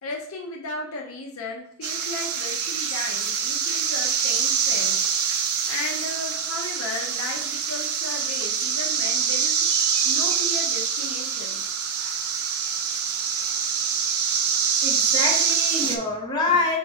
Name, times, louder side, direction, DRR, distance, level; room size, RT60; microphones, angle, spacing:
voice 1, 0.0-5.0 5.7-9.7 10.0-11.6, left 2 dB, 70° left, 0 dB, 0.9 m, -35 dB
sound 1, 1.8-16.0, right 7 dB, 75° right, 0.6 m, -25 dB
voice 2, 14.8-16.8, left 3 dB, 20° left, -3 dB, 1.0 m, -25 dB
3.7 x 2.9 x 4.7 m, 0.62 s
head